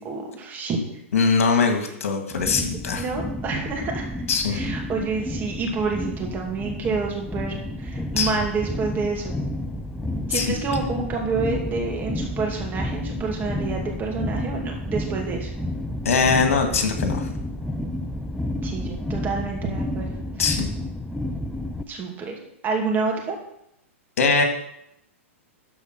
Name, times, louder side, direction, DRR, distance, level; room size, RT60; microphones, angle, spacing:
voice 1, 0.0-0.8 1.5-1.6 2.9-4.1 4.5-9.4 10.3-15.5 18.6-20.1 21.9-22.3 22.6-23.4, right 4 dB, 25° right, 0 dB, 2.6 m, -28 dB
voice 2, 1.1-3.0 4.3-4.6 8.2-8.3 10.3-10.5 16.1-17.3 20.4-20.7 24.2-24.4, left 5 dB, 80° left, 5 dB, 2.0 m, -21 dB
sound 1, 2.3-21.8, left 1 dB, 5° left, 0.6 m, -30 dB
13.0 x 4.7 x 6.0 m, 0.78 s
hypercardioid pair, 130°, 7 cm